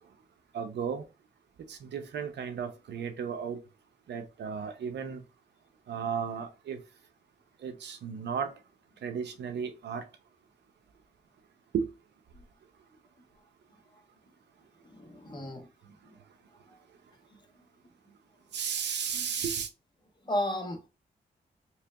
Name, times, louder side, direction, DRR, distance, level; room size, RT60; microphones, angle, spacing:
voice 1, 0.5-1.0 1.7-3.6 4.1-5.2 5.9-6.8 7.6-8.5 9.0-10.0 11.7-11.9 18.5-19.7, right 7 dB, 80° right, 0.7 m, -34 dB
voice 2, 14.8-16.2 16.7-16.8 17.3-17.4 18.1-18.2 19.1-19.3 20.2-20.9, left 1 dB, 25° left, 1.3 m, -36 dB
3.3 x 3.0 x 3.4 m
cardioid pair, 70°, 18 cm